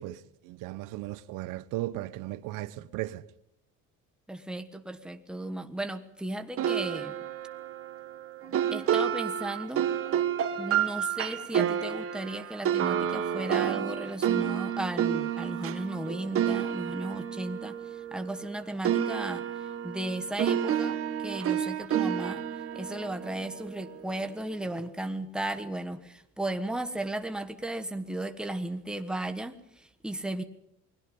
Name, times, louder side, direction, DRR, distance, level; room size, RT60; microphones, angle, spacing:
voice 1, 0.0-3.2, right 16 dB, 75° right, 1.0 m, -36 dB
voice 2, 4.3-7.2 8.7-9.8 10.6-17.8 18.1-19.4 19.8-21.0 21.2-22.4 22.7-29.5 30.0-30.4, right 1 dB, 5° right, 1.4 m, -35 dB
sound 1, 6.6-18.5 18.8-24.1, right 9 dB, 45° right, 2.0 m, -30 dB
29.0 x 20.5 x 5.4 m
cardioid pair, 145°, 32 cm